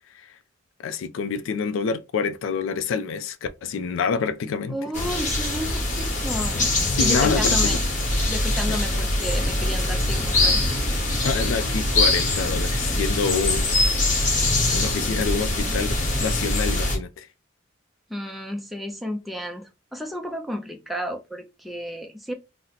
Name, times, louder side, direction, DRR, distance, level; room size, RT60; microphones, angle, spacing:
voice 1, 0.8-4.8 6.9-7.8 8.7-8.8 11.2-13.7 14.7-17.3, left 5 dB, 85° left, 0.3 m, -27 dB
voice 2, 4.7-6.7 7.0-7.9 8.3-10.6 18.1-22.3, equal, ahead, 0.4 m, -32 dB
sound 1, 4.9-17.0, left 2 dB, 40° left, 0.9 m, -23 dB
2.7 x 2.0 x 3.9 m
head